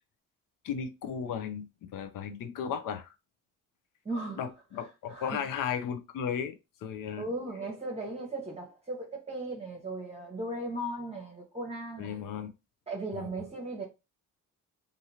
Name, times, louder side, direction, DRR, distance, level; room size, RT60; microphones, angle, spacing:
voice 1, 0.6-3.1 4.4-6.6 6.8-7.3 12.0-12.5 13.1-13.3, left 7 dB, 80° left, 0.6 m, -35 dB
voice 2, 4.0-4.4 5.1-5.4 7.2-12.2 12.9-13.8, right 2 dB, 20° right, 0.8 m, -37 dB
2.8 x 2.6 x 2.7 m
cardioid pair, 80°, 32 cm